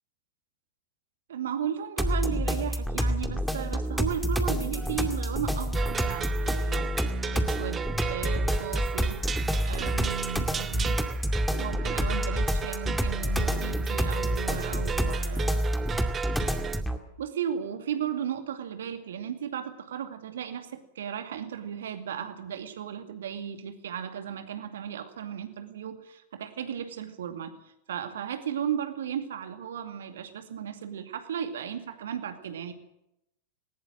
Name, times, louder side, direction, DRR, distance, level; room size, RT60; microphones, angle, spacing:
voice 1, 1.3-6.9 7.3-9.2 9.6-11.0 11.5-15.6 17.2-27.5 27.9-32.7, right 8 dB, 60° right, 8 dB, 2.4 m, -35 dB
sound 1, 2.0-17.0, equal, ahead, 2.3 m, -28 dB
sound 2, 5.7-16.8, right 7 dB, 20° right, 0.7 m, -36 dB
20.0 x 19.5 x 7.7 m, 0.84 s
figure-of-eight pair, 90°, 0 cm